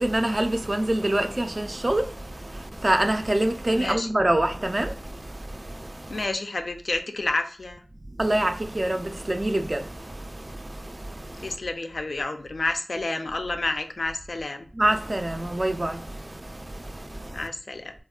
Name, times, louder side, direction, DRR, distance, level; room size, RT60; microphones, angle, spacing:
voice 1, 0.0-6.2 8.2-11.6 14.7-17.5, right 1 dB, 35° right, 0.3 m, -26 dB
voice 2, 3.7-4.1 6.1-7.8 11.4-14.7 17.3-17.9, left 2 dB, 70° left, 0.4 m, -30 dB
3.4 x 2.1 x 2.3 m
wide cardioid pair, 50°, 0 cm